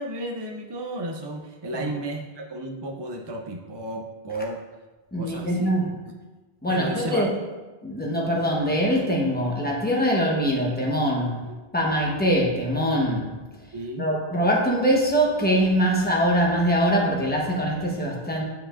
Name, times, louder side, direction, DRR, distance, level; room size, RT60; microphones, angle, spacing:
voice 1, 0.0-4.6 5.2-5.7 6.7-7.4 11.4-11.5 13.7-14.1, right 1 dB, 40° right, 2 dB, 0.3 m, -33 dB
voice 2, 5.1-5.9 6.6-7.3 7.8-11.4 11.7-13.3 13.6-18.4, equal, 10° left, -3 dB, 1.0 m, -23 dB
9.1 x 4.8 x 2.5 m, 1.2 s
omnidirectional pair, 1.0 m